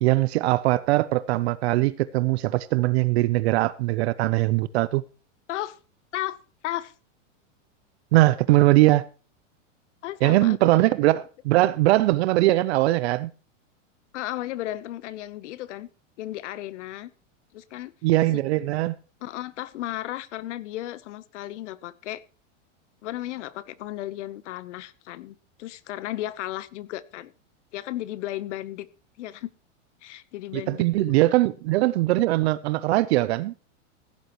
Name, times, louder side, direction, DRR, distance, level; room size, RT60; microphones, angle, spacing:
voice 1, 0.0-5.0 8.1-9.0 10.2-13.3 18.0-18.9 30.5-33.5, right 18 dB, 55° right, 0.7 m, -21 dB
voice 2, 10.0-10.8 14.1-15.9 16.2-17.1 17.5-17.9 18.3-18.4 19.2-22.2 23.0-27.3 27.7-28.9 29.2-29.5 30.0-31.1, left 14 dB, 65° left, 1.0 m, -34 dB
16.0 x 11.0 x 3.0 m
supercardioid pair, 150°, 38 cm